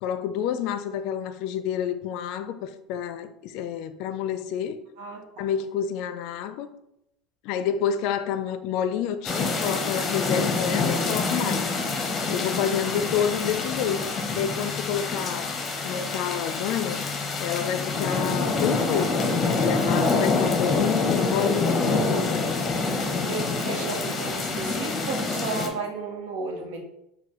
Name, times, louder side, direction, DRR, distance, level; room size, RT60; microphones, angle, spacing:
voice 1, 0.0-4.8 5.4-6.7 7.4-11.7 12.3-14.1 14.4-15.5 15.8-17.0 17.4-22.6, left 9 dB, 65° left, 0.4 m, -29 dB
voice 2, 5.0-5.5 12.8-12.9 22.8-26.8, right 4 dB, 85° right, 0.8 m, -34 dB
sound 1, 9.2-25.7, left 3 dB, 25° left, 0.7 m, -26 dB
6.4 x 2.2 x 3.0 m
supercardioid pair, 125°, 0 cm